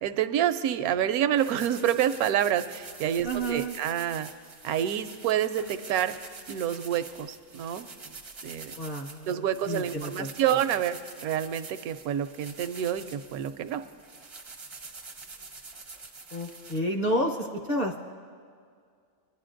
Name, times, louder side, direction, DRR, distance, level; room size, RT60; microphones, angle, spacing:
voice 1, 0.0-4.3 4.6-6.2 6.5-7.9 8.4-8.7 9.3-13.8, right 10 dB, 85° right, 10 dB, 1.1 m, -28 dB
sound 1, 1.4-16.8, right 3 dB, 40° right, 0.4 m, -46 dB
voice 2, 3.2-3.7 8.8-10.6 16.3-18.0, equal, 40° left, 0 dB, 0.7 m, -30 dB
22.0 x 10.5 x 2.5 m, 2.1 s
omnidirectional pair, 1.5 m